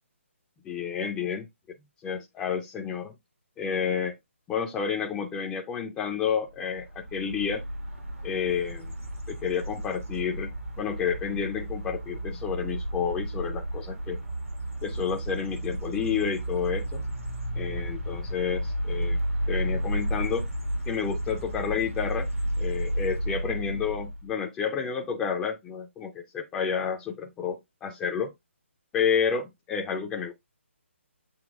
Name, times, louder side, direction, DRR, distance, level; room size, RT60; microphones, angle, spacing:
voice 1, 0.6-1.5 2.0-3.1 3.6-4.1 4.5-7.6 8.2-8.9 9.3-10.5 10.8-14.2 14.8-17.0 17.6-19.2 19.5-20.5 20.9-22.3 22.6-28.3 28.9-30.3, left 7 dB, 10° left, 0.4 m, -30 dB
sound 1, 6.7-24.3, equal, 90° right, 1.8 m, -32 dB
7.9 x 2.8 x 2.3 m
figure-of-eight pair, 145°, 7 cm